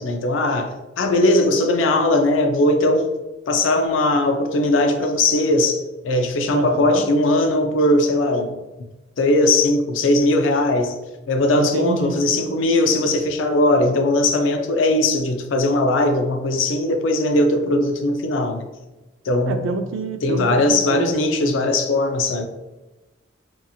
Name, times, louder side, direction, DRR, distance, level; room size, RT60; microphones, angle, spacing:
voice 1, 0.0-3.1 3.5-8.6 9.2-11.0 11.3-18.7 19.3-19.6 20.2-22.4, left 2 dB, 75° left, 6 dB, 0.4 m, -19 dB
voice 2, 6.5-7.0 11.6-12.2 19.5-21.7, right 3 dB, 85° right, 8 dB, 0.3 m, -27 dB
2.8 x 2.6 x 2.3 m, 1.1 s
head